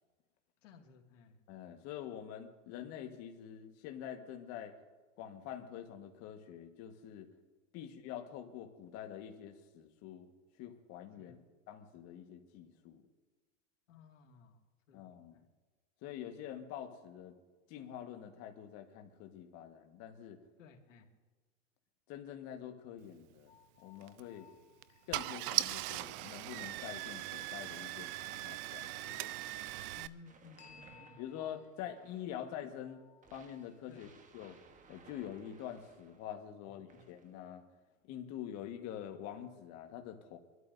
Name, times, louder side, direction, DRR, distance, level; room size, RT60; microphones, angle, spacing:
voice 1, 0.6-1.4 11.2-11.4 13.9-14.6 14.9-15.4 20.6-21.1 29.9-31.2 33.9-34.1 36.9-37.0, left 5 dB, 75° left, 2 dB, 2.3 m, -58 dB
voice 2, 1.5-4.7 5.2-7.3 7.7-10.3 10.6-11.4 11.7-13.0 14.9-15.4 16.0-17.4 17.7-20.4 22.1-23.5 23.8-24.5 25.1-29.3 31.2-33.0 33.3-34.1 34.3-34.6 34.9-37.6 38.0-40.4, left 10 dB, 45° left, 5 dB, 1.5 m, -46 dB
sound 1, 23.5-26.3 30.6-34.1, left 8 dB, 20° left, 1.0 m, -63 dB
Car / Engine starting, 24.0-24.2 24.8-24.9 25.1-30.1, right 17 dB, 50° right, 0.5 m, -39 dB
sound 2, 30.2-32.5 33.2-36.4 36.9-37.5, right 5 dB, 20° right, 1.2 m, -62 dB
25.5 x 12.5 x 2.7 m, 1.3 s
supercardioid pair, 135°, 38 cm